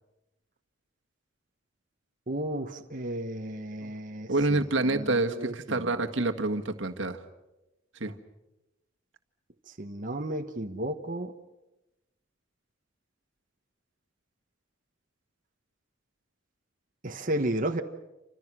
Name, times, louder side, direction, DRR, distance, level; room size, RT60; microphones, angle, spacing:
voice 1, 2.3-6.0 9.8-11.3 17.0-17.8, right 1 dB, 45° right, 4 dB, 1.2 m, -33 dB
voice 2, 4.3-7.2 8.0-8.1, right 2 dB, 80° right, 5 dB, 1.7 m, -27 dB
29.0 x 26.0 x 6.2 m, 0.97 s
head